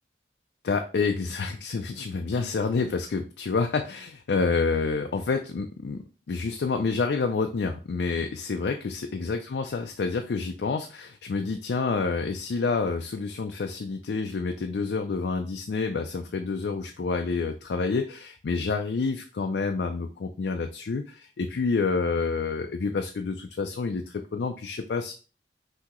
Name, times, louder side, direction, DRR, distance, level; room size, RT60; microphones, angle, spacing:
voice 1, 0.6-25.1, left 4 dB, 65° left, 5 dB, 0.4 m, -28 dB
5.8 x 2.8 x 3.0 m, 0.36 s
head